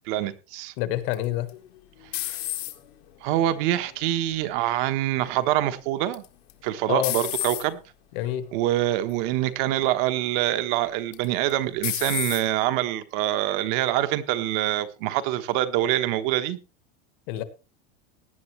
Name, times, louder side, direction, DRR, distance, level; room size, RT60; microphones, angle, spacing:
voice 1, 0.1-0.7 2.2-2.4 3.2-6.2 6.6-7.8 8.5-16.6, right 13 dB, 50° right, 10 dB, 1.2 m, -25 dB
voice 2, 0.8-1.5 6.9-7.1 8.1-8.5 17.3-17.4, left 14 dB, 50° left, 12 dB, 1.5 m, -27 dB
sound 1, 1.1-3.0 3.6-4.1 6.1-6.5 7.0-7.7 8.4-8.7 9.1-9.2 11.1-11.5 11.8-12.4, left 17 dB, 65° left, 1.7 m, -30 dB
17.5 x 10.0 x 3.2 m, 0.31 s
supercardioid pair, 170°, 33 cm